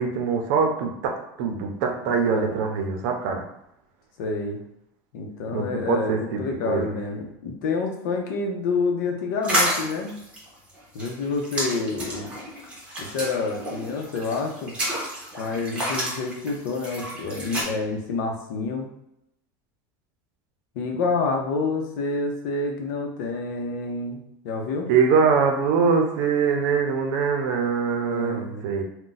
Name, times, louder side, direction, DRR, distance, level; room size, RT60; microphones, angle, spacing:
voice 1, 0.0-3.4 5.5-6.9 24.9-28.8, right 5 dB, 65° right, 3 dB, 0.6 m, -23 dB
voice 2, 4.2-4.6 5.1-10.1 10.9-12.3 13.0-14.7 15.4-18.9 20.7-24.2 24.4-24.9 28.1-28.7, left 3 dB, 75° left, 2 dB, 0.7 m, -28 dB
sound 1, 9.4-17.6, equal, 10° right, 0.8 m, -30 dB
2.5 x 2.2 x 3.9 m, 0.82 s
supercardioid pair, 165°, 10 cm